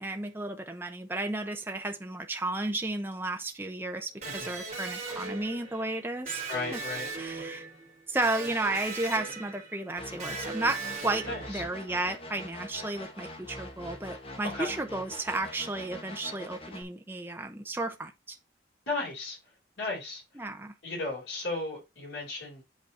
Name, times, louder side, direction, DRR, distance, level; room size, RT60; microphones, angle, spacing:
voice 1, 0.0-6.4 6.7-6.8 7.2-7.6 8.1-18.4 20.4-20.7, right 2 dB, 10° right, 0.7 m, -33 dB
Electric guitar, 4.2-11.9, right 4 dB, 35° right, 2.6 m, -39 dB
voice 2, 6.5-7.1 11.3-11.6 14.5-14.7 18.9-19.4 19.8-20.2 20.8-22.6, left 2 dB, 80° left, 4.2 m, -35 dB
sound 1, 10.0-16.8, left 1 dB, 30° left, 1.3 m, -43 dB
8.2 x 4.0 x 4.2 m
head